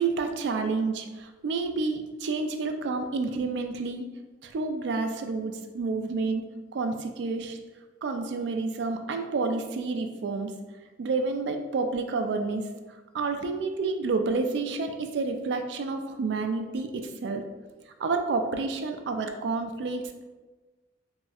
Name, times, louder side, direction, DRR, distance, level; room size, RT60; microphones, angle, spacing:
voice 1, 0.0-4.1 4.4-6.4 6.7-7.6 8.0-10.6 11.0-12.7 13.1-17.4 18.0-20.2, right 4 dB, 65° right, 6 dB, 0.3 m, -29 dB
4.1 x 2.1 x 2.3 m, 1.2 s
head